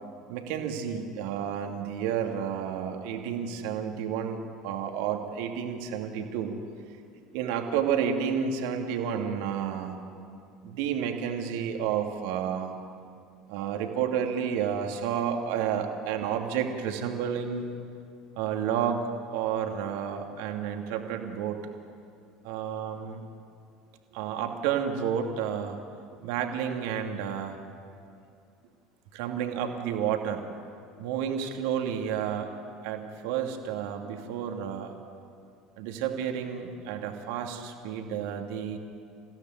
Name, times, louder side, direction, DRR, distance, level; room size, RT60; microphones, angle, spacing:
voice 1, 0.3-6.6 7.3-10.0 10.6-12.7 13.5-17.6 18.4-21.6 22.4-23.2 24.1-25.8 26.2-27.6 29.1-30.5 31.0-32.5 32.8-34.9 35.8-38.8, right 8 dB, 60° right, 3 dB, 2.6 m, -31 dB
28.5 x 16.5 x 9.5 m, 2.4 s
figure-of-eight pair, 70°, 0 cm